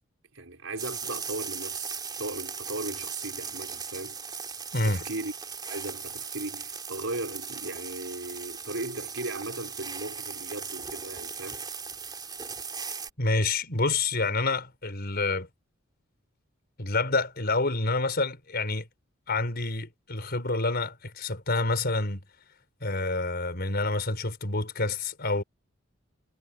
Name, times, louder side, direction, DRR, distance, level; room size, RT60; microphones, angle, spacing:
voice 1, 0.3-4.2 4.8-5.3 5.7-11.6, right 2 dB, 80° right, 5.1 m, -37 dB
sound 1, 0.8-13.1, right 5 dB, 20° right, 3.4 m, -38 dB
voice 2, 4.7-5.0 13.2-15.5 16.8-18.9 19.3-22.2 22.8-25.4, left 3 dB, 55° left, 4.9 m, -28 dB
head